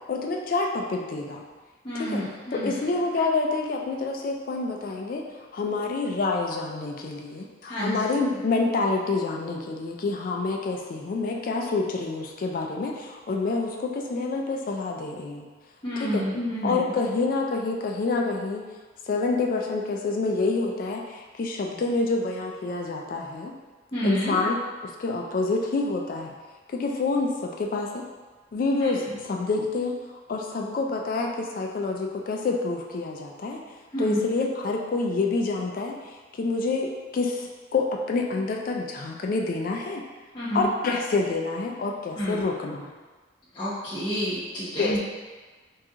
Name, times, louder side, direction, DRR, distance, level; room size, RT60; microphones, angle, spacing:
voice 1, 0.1-1.4 1.9-15.5 16.0-18.6 19.1-23.5 24.0-26.3 26.7-28.0 28.5-30.0 30.3-33.6 34.0-40.0 40.5-42.9 44.8-45.0, left 3 dB, 50° left, 1 dB, 0.3 m, -27 dB
voice 2, 1.8-2.7 7.7-8.0 15.8-16.8 23.9-24.3 33.9-34.2 40.3-40.7 42.2-42.4 43.5-45.0, equal, 25° left, -13 dB, 0.8 m, -29 dB
3.6 x 2.4 x 2.8 m, 1.3 s
head